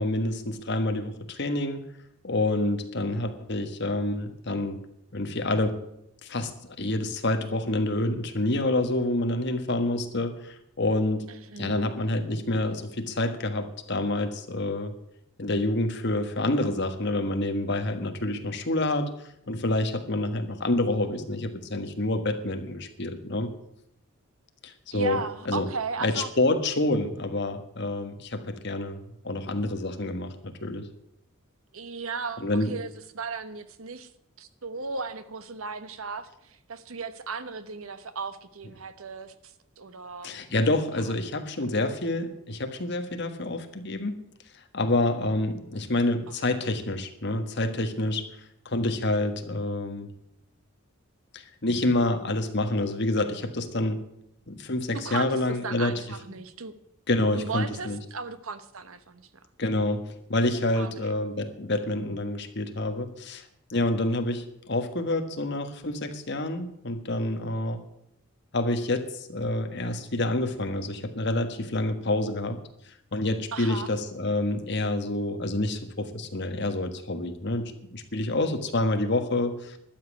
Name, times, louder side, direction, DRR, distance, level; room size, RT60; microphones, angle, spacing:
voice 1, 0.0-1.8 2.2-4.8 5.1-5.8 6.2-6.5 6.8-11.2 11.6-14.9 15.4-19.1 19.5-23.5 24.6-25.2 25.5-25.7 26.0-30.9 32.4-32.7 40.2-44.2 44.7-48.3 48.6-50.1 51.3-54.0 54.5-56.0 57.1-58.0 59.6-63.4 63.7-67.8 68.5-72.6 72.9-79.8, left 2 dB, 55° left, 7 dB, 1.5 m, -28 dB
voice 2, 11.3-11.8 24.9-26.3 31.7-34.1 34.4-40.3 41.1-41.2 46.4-46.6 54.9-56.7 57.3-59.3 60.7-61.1 73.5-73.9, right 4 dB, 80° right, 12 dB, 1.1 m, -36 dB
12.0 x 7.4 x 9.5 m, 0.78 s
head